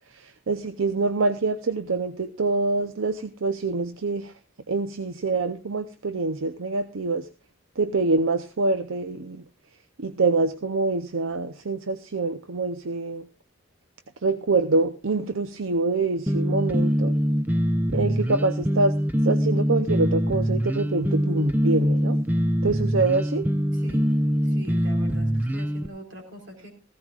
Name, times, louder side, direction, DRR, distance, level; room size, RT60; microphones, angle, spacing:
voice 1, 0.1-4.3 4.7-7.3 7.8-9.4 10.0-13.3 14.2-17.1 17.9-18.9 19.2-22.2 22.6-23.5, right 3 dB, 80° right, 10 dB, 0.7 m, -25 dB
sound 1, 16.3-25.9, equal, 10° right, 0.6 m, -24 dB
voice 2, 23.7-24.1 24.4-26.7, equal, 65° right, 2 dB, 4.1 m, -42 dB
17.0 x 15.5 x 2.4 m, 0.31 s
head